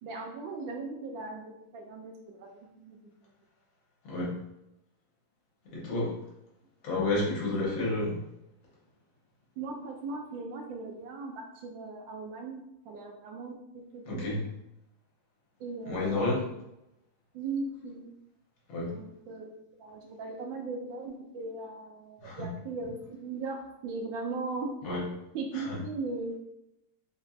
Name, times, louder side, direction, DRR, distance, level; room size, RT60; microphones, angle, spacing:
voice 1, 0.0-3.0 9.6-14.3 15.6-16.3 17.3-18.1 18.9-19.5 19.8-24.7 25.3-26.4, right 3 dB, 75° right, 2 dB, 1.2 m, -38 dB
voice 2, 5.7-6.2 6.8-8.2 14.1-14.4 15.9-16.5 18.7-18.9 22.2-22.5 24.8-25.1 25.5-25.8, left 2 dB, 75° left, -4 dB, 1.9 m, -30 dB
4.4 x 2.9 x 2.6 m, 0.85 s
omnidirectional pair, 2.3 m